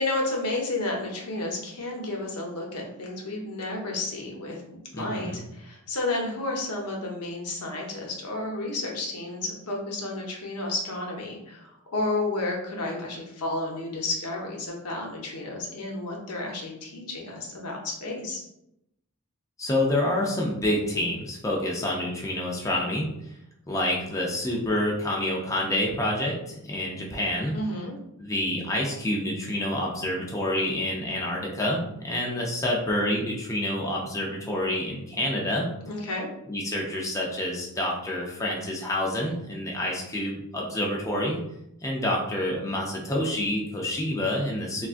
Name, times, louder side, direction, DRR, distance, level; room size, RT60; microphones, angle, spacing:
voice 1, 0.0-4.6 4.9-18.4 27.5-28.0 35.8-36.3, left 2 dB, 85° left, -1 dB, 0.8 m, -31 dB
voice 2, 4.9-5.4 19.6-23.1 23.7-27.6 28.2-35.7 36.5-41.4 41.8-44.9, left 1 dB, 15° left, -2 dB, 0.4 m, -28 dB
3.5 x 2.3 x 2.4 m, 0.82 s
head